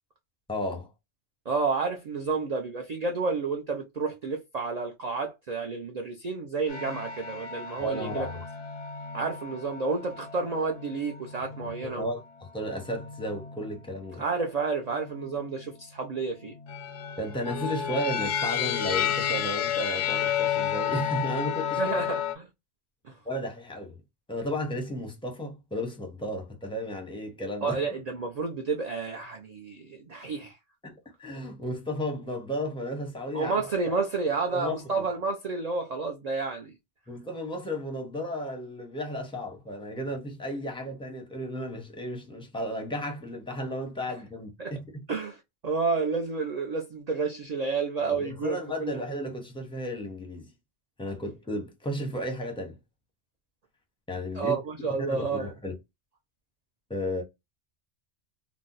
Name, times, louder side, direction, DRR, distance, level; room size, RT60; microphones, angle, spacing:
voice 1, 0.5-0.9 7.7-8.4 11.8-12.2 12.5-14.2 17.2-21.9 23.2-24.0 24.3-27.8 30.8-33.5 33.9-34.0 34.5-35.0 37.1-44.9 48.1-50.5 51.0-52.8 54.1-54.6 55.0-55.7 56.9-57.2, equal, 5° left, 0.6 m, -34 dB
voice 2, 1.5-8.3 9.1-12.1 14.2-16.5 21.7-22.5 23.0-23.2 27.6-30.6 33.3-36.7 44.6-44.7 45.1-49.0 54.3-55.5, right 4 dB, 50° right, 0.5 m, -30 dB
sound 1, 6.7-12.2 12.8-13.7 14.9-15.6 16.6-22.3, left 9 dB, 90° left, 0.9 m, -32 dB
2.6 x 2.1 x 3.8 m
omnidirectional pair, 1.2 m